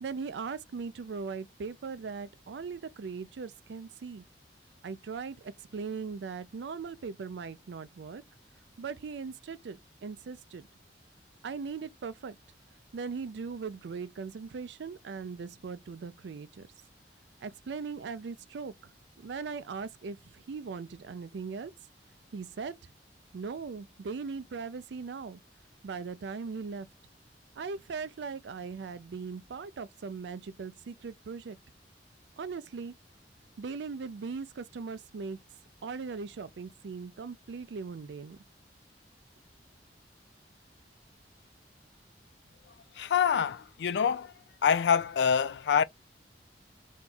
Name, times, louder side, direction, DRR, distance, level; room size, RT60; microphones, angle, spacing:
voice 1, 0.0-4.2 4.8-8.2 8.8-10.6 11.4-12.4 12.9-16.7 17.4-18.9 19.2-21.7 22.3-22.7 23.3-25.4 25.8-26.9 27.6-31.6 32.4-32.9 33.6-35.4 35.8-38.4, right 5 dB, 75° right, 0.4 m, -39 dB
voice 2, 42.9-44.3 44.6-45.8, left 7 dB, 75° left, 0.3 m, -26 dB
2.7 x 2.3 x 4.0 m
head